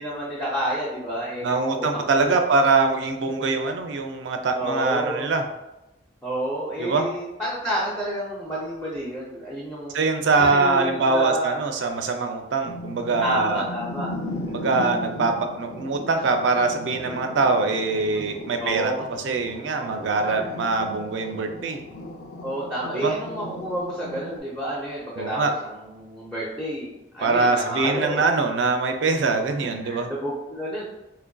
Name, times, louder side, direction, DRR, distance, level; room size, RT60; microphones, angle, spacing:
voice 1, 0.0-2.4 3.4-3.5 4.5-5.3 6.2-9.9 10.4-11.6 13.2-14.1 18.6-19.0 19.8-19.9 20.2-20.4 22.4-28.3 29.6-30.8, right 1 dB, 5° left, -7 dB, 0.5 m, -30 dB
voice 2, 1.4-5.4 6.8-7.1 9.9-13.6 14.5-21.8 22.9-23.2 25.2-25.5 27.2-30.1, right 3 dB, 80° right, 5 dB, 0.4 m, -23 dB
sound 1, 12.6-24.4, left 2 dB, 80° left, 0.5 m, -37 dB
4.1 x 2.5 x 2.2 m, 0.94 s
head